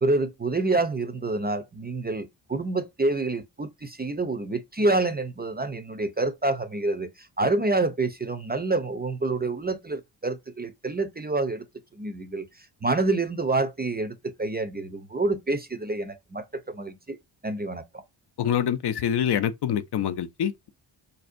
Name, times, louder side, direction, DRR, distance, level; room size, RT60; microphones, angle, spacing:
voice 1, 0.0-11.6 12.0-12.5 12.8-17.2 17.4-18.0, right 2 dB, 20° right, 0.4 m, -27 dB
voice 2, 18.4-20.7, left 9 dB, 60° left, 0.5 m, -26 dB
4.1 x 2.7 x 2.5 m
cardioid pair, 70°, 47 cm